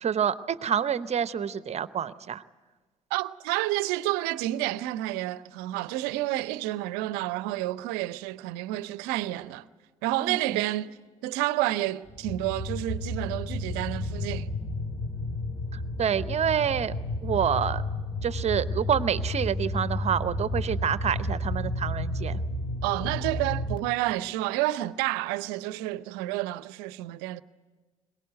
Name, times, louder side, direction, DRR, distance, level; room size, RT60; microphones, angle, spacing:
voice 1, 0.0-2.4 10.2-10.6 15.7-16.9 17.2-17.8 18.2-22.4, right 8 dB, 40° right, 0.8 m, -28 dB
voice 2, 3.1-9.6 10.0-11.0 11.2-14.5 22.8-27.4, right 16 dB, 65° right, 0.7 m, -30 dB
sound 1, 12.1-23.8, left 1 dB, 30° left, 2.1 m, -32 dB
22.5 x 19.5 x 9.3 m
figure-of-eight pair, 50°, 17 cm